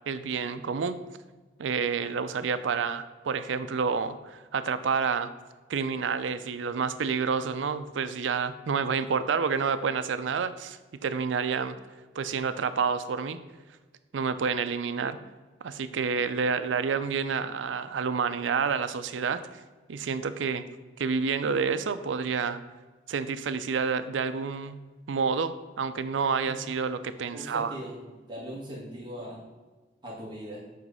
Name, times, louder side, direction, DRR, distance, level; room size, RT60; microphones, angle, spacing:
voice 1, 0.1-1.0 1.6-5.3 5.7-11.8 12.2-13.4 14.1-15.2 15.6-19.4 19.9-20.6 21.0-22.6 23.1-24.8 25.1-27.7, right 5 dB, 75° right, 11 dB, 0.5 m, -29 dB
voice 2, 27.3-27.9 28.3-29.4 30.0-30.6, equal, 25° right, -6 dB, 1.7 m, -39 dB
7.7 x 3.2 x 5.4 m, 1.3 s
head